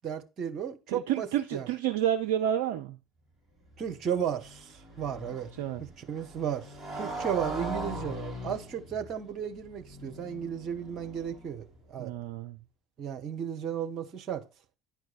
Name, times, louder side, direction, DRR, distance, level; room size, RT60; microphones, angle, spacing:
voice 1, 0.0-1.7 3.8-5.5 6.0-12.1 13.0-14.4, right 8 dB, 45° right, 1.3 m, -34 dB
voice 2, 0.9-3.0 5.6-5.8 12.0-12.6, right 10 dB, 65° right, 0.5 m, -29 dB
Motorcycle, 3.6-11.8, right 1 dB, 10° right, 3.8 m, -40 dB
10.0 x 4.6 x 4.1 m
figure-of-eight pair, 60°, 0 cm